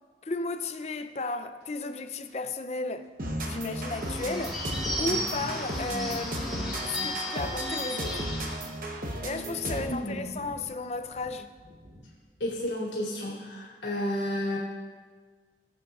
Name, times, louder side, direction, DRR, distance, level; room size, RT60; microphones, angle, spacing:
voice 1, 0.2-3.1 3.4-4.6 5.0-8.3 9.2-11.5, left 3 dB, 35° left, 0.5 m, -34 dB
sound 1, 1.6-1.7 2.3-2.4 3.0-3.1 3.7-7.1 7.4-7.9 8.6-12.1 12.4-12.7, equal, 65° right, 2.8 m, -45 dB
sound 2, 3.2-10.1, right 1 dB, 50° right, 1.0 m, -35 dB
Bird / Bell, 3.7-8.7, left 1 dB, ahead, 2.4 m, -35 dB
voice 2, 9.9-10.3 12.4-14.6, left 1 dB, 80° left, 2.9 m, -32 dB
18.5 x 8.3 x 2.4 m
head